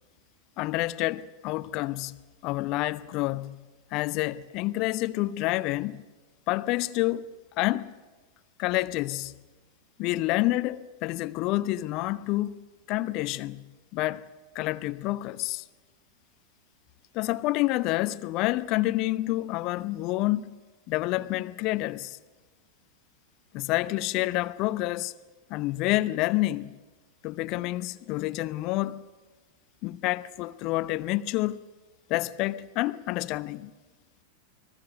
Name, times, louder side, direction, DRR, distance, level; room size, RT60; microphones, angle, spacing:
voice 1, 0.6-3.6 3.9-6.0 6.5-7.3 7.6-7.9 8.6-9.4 10.0-12.6 12.9-14.3 14.5-15.6 17.1-20.6 20.9-22.2 23.5-25.1 25.5-26.8 27.2-29.1 29.8-31.7 32.1-33.7, left 18 dB, 40° left, 0.9 m, -28 dB
30.0 x 21.0 x 5.2 m
figure-of-eight pair, 90°, 0 cm